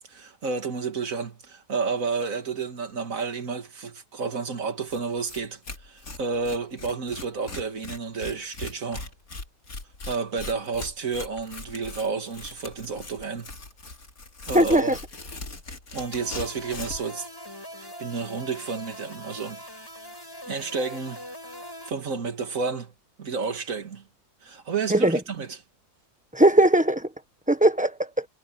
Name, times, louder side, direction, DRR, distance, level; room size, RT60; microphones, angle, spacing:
voice 1, 0.0-9.1 10.1-13.5 14.5-15.0 15.9-17.3 18.0-19.6 20.5-21.2 21.9-22.9 23.2-24.0 24.4-25.6, right 4 dB, 70° right, 2.6 m, -31 dB
Tearing, 4.9-5.0 5.3-5.4 5.6-17.1, left 3 dB, 85° left, 3.5 m, -39 dB
voice 2, 14.5-14.9 24.9-25.2 26.3-27.1 27.5-28.2, right 1 dB, 5° right, 1.1 m, -19 dB
sound 1, 16.0-21.9, equal, 15° left, 6.4 m, -42 dB
omnidirectional pair, 1.5 m